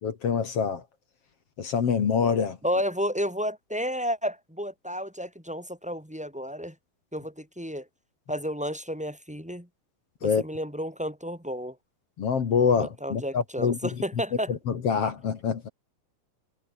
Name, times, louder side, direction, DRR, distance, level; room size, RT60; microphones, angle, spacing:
voice 1, 0.0-0.8 1.6-2.6 10.2-10.4 12.2-13.8 14.5-15.7, left 6 dB, 45° left, 2.5 m, -25 dB
voice 2, 2.6-6.7 7.1-7.9 8.3-9.7 10.2-11.8 12.8-14.5, equal, ahead, 3.5 m, -31 dB
omnidirectional pair, 4.5 m